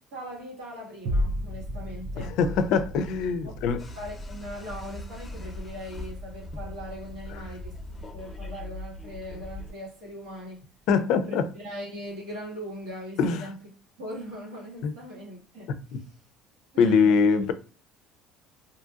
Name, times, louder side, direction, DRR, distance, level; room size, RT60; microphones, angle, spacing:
voice 1, 0.0-2.8 3.4-3.5 3.9-10.7 11.3-13.5 14.0-15.7 16.7-17.3, equal, 85° right, 1.5 m, -40 dB
sound 1, 1.1-9.6 10.1-10.2, equal, 60° right, 0.5 m, -36 dB
voice 2, 2.2-3.8 10.9-11.4 13.2-13.4 14.8-14.9 16.8-17.5, left 5 dB, 70° left, 0.4 m, -23 dB
sound 2, 3.8-9.7, left 1 dB, 25° left, 0.7 m, -40 dB
2.7 x 2.7 x 2.4 m
cardioid pair, 115°, 0 cm